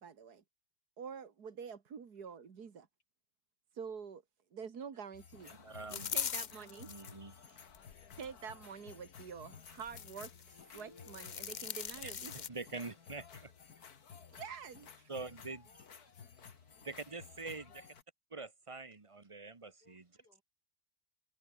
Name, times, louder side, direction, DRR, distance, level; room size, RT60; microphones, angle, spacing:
voice 1, 0.0-0.4 1.0-2.9 3.7-4.2 4.5-5.5 5.9-6.9 7.5-7.6 8.2-12.5 14.3-15.1, right 6 dB, 80° right, 2.5 m, -47 dB
sound 1, 5.1-18.0, left 6 dB, 70° left, 2.2 m, -55 dB
voice 2, 5.5-6.1 6.9-7.6 12.0-12.1 12.5-13.5 15.1-15.6 16.8-17.7 18.3-20.0, right 3 dB, 20° right, 1.1 m, -45 dB
sound 2, 5.9-7.1 7.7-8.3 9.6-10.4 10.8-12.5, left 7 dB, 50° left, 0.5 m, -41 dB
Guitar, 10.7-14.2, left 2 dB, 20° left, 1.4 m, -63 dB
voice 3, 15.6-16.2 16.7-17.9 19.8-20.4, left 2 dB, 90° left, 7.1 m, -71 dB
omnidirectional pair, 1.7 m